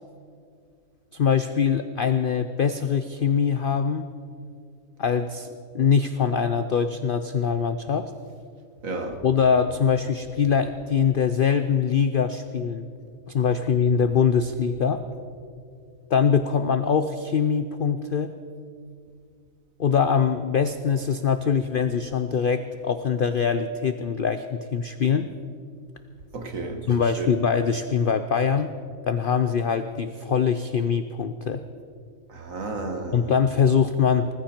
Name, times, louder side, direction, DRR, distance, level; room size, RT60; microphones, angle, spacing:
voice 1, 1.1-4.1 5.0-5.5 5.7-8.1 9.2-12.9 13.3-15.0 16.1-18.3 19.8-25.3 26.9-28.7 29.1-31.6 33.1-34.3, left 6 dB, 65° left, 10 dB, 0.5 m, -23 dB
voice 2, 8.8-9.2 26.3-27.3 32.3-33.3, right 3 dB, 65° right, 5 dB, 2.0 m, -32 dB
19.5 x 15.0 x 4.4 m, 2.3 s
omnidirectional pair, 1.6 m